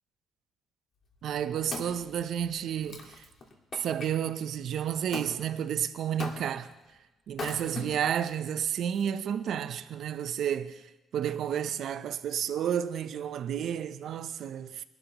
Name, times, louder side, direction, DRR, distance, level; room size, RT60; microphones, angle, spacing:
Wood, 1.1-4.1 5.1-5.3 6.2-6.7 7.3-8.3 8.9-9.0, left 3 dB, 50° left, 1.7 m, -40 dB
voice 1, 1.2-3.3 3.7-6.7 7.3-14.8, right 9 dB, 70° right, 0.6 m, -31 dB
22.0 x 11.5 x 3.0 m
cardioid pair, 100°, 0 cm